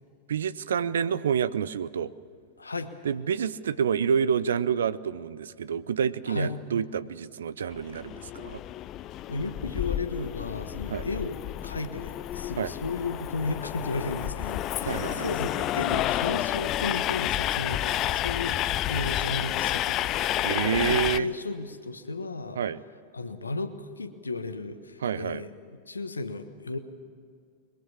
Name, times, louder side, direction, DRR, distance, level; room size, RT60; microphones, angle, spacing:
voice 1, 0.3-2.1 3.0-8.6 10.9-11.1 12.6-12.7 14.8-15.3 20.4-21.3 22.6-22.8 25.0-25.4, right 7 dB, 65° right, 17 dB, 0.6 m, -28 dB
voice 2, 2.6-2.9 6.3-6.6 9.3-22.6 23.1-25.5 25.9-26.8, left 3 dB, 75° left, 10 dB, 1.3 m, -34 dB
Train, 7.7-21.2, left 13 dB, 35° left, 0.5 m, -30 dB
22.5 x 22.0 x 7.2 m, 2.3 s
figure-of-eight pair, 90°, 0 cm